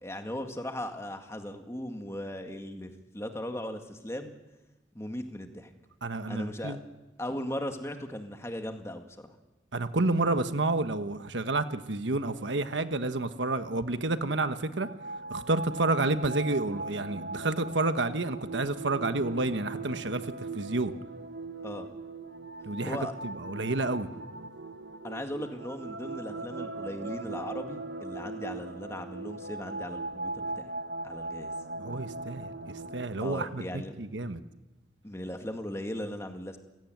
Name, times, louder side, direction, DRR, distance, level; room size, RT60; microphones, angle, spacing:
voice 1, 0.0-4.3 4.9-5.7 6.3-6.8 7.2-9.4 21.6-21.9 22.8-23.3 25.0-30.7 31.0-31.5 33.2-34.0 35.0-36.6, left 1 dB, 15° left, 5 dB, 2.1 m, -38 dB
voice 2, 6.0-6.8 9.7-14.9 15.3-20.9 22.6-23.0 23.2-24.1 31.8-34.4, right 2 dB, 85° right, 10 dB, 1.3 m, -30 dB
sound 1, 14.6-33.0, right 2 dB, 65° right, 1.1 m, -39 dB
28.5 x 17.0 x 9.3 m, 1.1 s
head